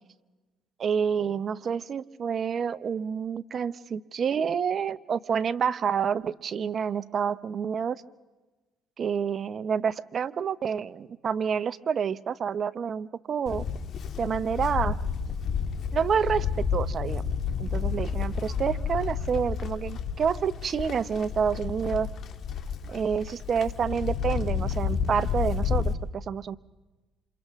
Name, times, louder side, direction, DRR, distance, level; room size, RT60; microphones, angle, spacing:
voice 1, 0.8-8.0 9.0-13.6 14.2-15.0 15.9-16.5 16.7-17.2 17.6-22.1 22.9-26.6, right 7 dB, 50° right, 15 dB, 0.8 m, -28 dB
Livestock farm animals working animals, 13.5-25.9, left 7 dB, 60° left, 1.7 m, -30 dB
28.5 x 27.5 x 3.6 m, 1.2 s
cardioid pair, 85°, 0 cm